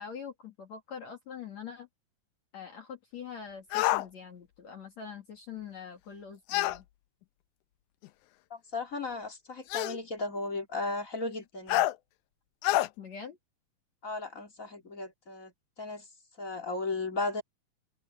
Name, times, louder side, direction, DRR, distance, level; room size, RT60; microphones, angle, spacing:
voice 1, 0.0-1.9 2.5-6.8 13.0-13.4, left 7 dB, 50° left, 3.2 m, -44 dB
sound 1, 3.7-4.1 6.5-6.8 8.0-8.1 9.7-10.0 11.7-11.9 12.6-12.9, left 16 dB, 85° left, 1.8 m, -26 dB
voice 2, 8.5-11.9 14.0-15.5 15.8-16.0 16.4-17.4, left 3 dB, 25° left, 2.1 m, -35 dB
open air
omnidirectional pair, 4.2 m